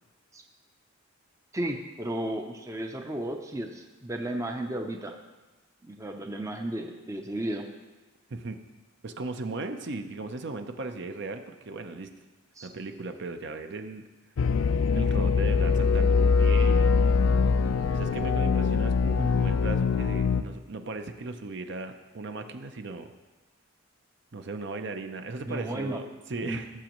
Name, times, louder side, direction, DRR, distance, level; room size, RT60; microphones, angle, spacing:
voice 1, 1.5-5.1 5.8-7.7 12.6-12.7 25.5-26.0 26.4-26.6, right 1 dB, 15° right, 4 dB, 0.6 m, -34 dB
voice 2, 9.0-12.1 12.6-14.0 14.9-16.9 17.9-23.1 24.3-26.7, right 3 dB, 55° right, 7 dB, 0.6 m, -37 dB
sound 1, 14.4-20.4, left 5 dB, 65° left, 0.4 m, -23 dB
16.5 x 7.2 x 3.0 m, 1.2 s
head